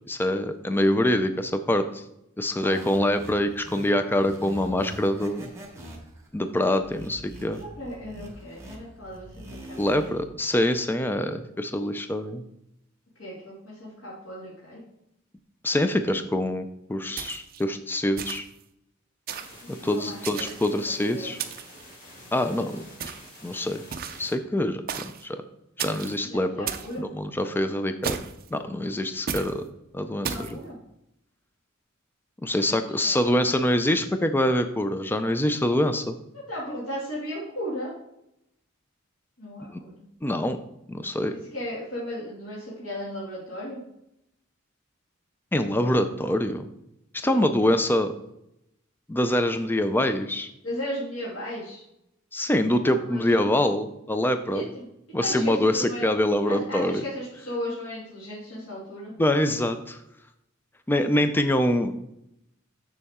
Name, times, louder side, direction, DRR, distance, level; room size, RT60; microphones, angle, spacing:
voice 1, 0.1-2.0 2.4-5.5 6.3-7.6 9.8-12.4 15.6-18.4 19.7-21.4 22.3-22.8 23.4-23.8 24.2-25.4 25.8-26.7 27.0-28.2 28.5-29.6 29.9-30.6 32.4-36.2 39.7-39.8 40.2-40.6 40.9-41.3 45.5-46.7 47.1-48.1 49.1-50.5 52.3-54.6 55.1-57.0 59.2-60.0 60.9-61.9, left 1 dB, 10° left, 8 dB, 0.4 m, -25 dB
sound 1, 2.6-10.3, right 1 dB, 15° right, 1.4 m, -43 dB
voice 2, 7.5-9.3 9.7-10.1 13.2-14.8 19.6-20.5 21.1-21.3 22.2-22.5 26.3-27.1 30.3-30.8 32.7-33.2 36.5-38.0 39.4-40.1 41.3-43.8 47.2-47.7 50.6-51.8 52.8-53.4 54.5-54.9 55.2-56.1 56.4-59.1, equal, 80° left, -7 dB, 2.3 m, -36 dB
sound 2, 17.2-17.6 18.2-18.6 19.3-19.6 20.2-20.8 21.4-21.8 23.0-23.4 23.9-24.3 24.9-25.2 25.8-26.2 26.7-26.9 28.0-28.5 29.3-29.5 30.2-30.5, right 7 dB, 45° right, 0.5 m, -34 dB
sound 3, 19.3-24.3, left 1 dB, 40° left, 2.1 m, -48 dB
6.9 x 6.4 x 3.6 m, 0.81 s
head